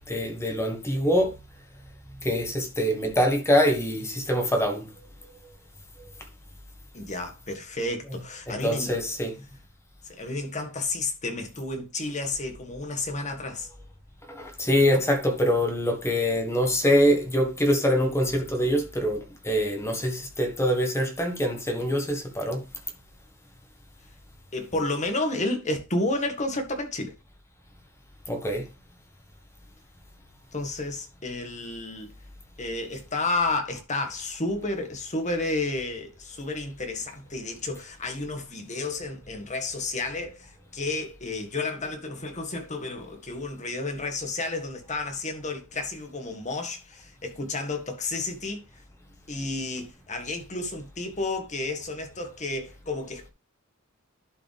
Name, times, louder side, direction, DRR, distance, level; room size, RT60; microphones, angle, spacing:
voice 1, 0.0-1.3 2.2-4.9 8.1-8.2 8.5-9.3 14.3-22.6 28.3-28.7, equal, 15° left, 1.5 m, -24 dB
voice 2, 6.9-8.9 10.1-13.7 24.5-27.1 30.5-32.1 32.6-48.6 49.3-53.3, left 2 dB, 35° left, 1.8 m, -31 dB
11.5 x 5.1 x 3.5 m
head